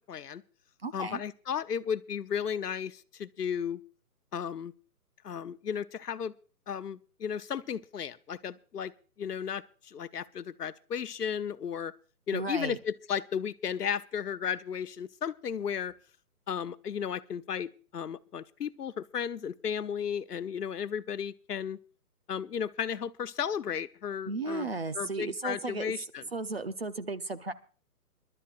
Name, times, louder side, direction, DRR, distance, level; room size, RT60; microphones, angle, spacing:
voice 1, 0.1-0.4 0.9-3.8 4.3-4.7 5.2-6.3 6.7-8.9 9.2-11.9 12.3-15.9 16.5-21.8 22.3-24.7 25.0-26.2, left 7 dB, 75° left, 14 dB, 0.9 m, -34 dB
voice 2, 0.8-1.2 12.3-12.8 24.3-26.0 26.3-27.5, right 3 dB, 40° right, 12 dB, 0.7 m, -34 dB
26.5 x 12.0 x 2.5 m, 0.38 s
hypercardioid pair, 175°, 47 cm